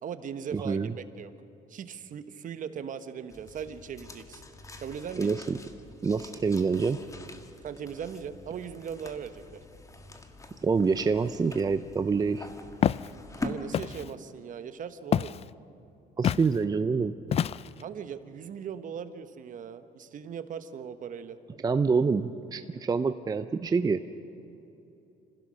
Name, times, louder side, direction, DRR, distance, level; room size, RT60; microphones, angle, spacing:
voice 1, 0.0-1.3 1.7-4.4 4.8-5.4 7.6-9.6 13.4-15.4 17.8-21.4, right 7 dB, 50° right, 10 dB, 1.2 m, -39 dB
voice 2, 0.5-0.9 5.2-5.6 6.0-7.0 10.6-12.5 16.2-17.1 21.6-24.0, right 5 dB, 20° right, 10 dB, 0.6 m, -26 dB
sound 1, 3.3-13.5, left 3 dB, 20° left, 1.7 m, -44 dB
Walk footsteps, 12.8-13.1 13.7-14.1 15.1-15.5 16.2-16.5 17.3-17.8, left 9 dB, 35° left, 0.4 m, -27 dB
26.5 x 15.5 x 6.4 m, 3.0 s
cardioid pair, 110°, 17 cm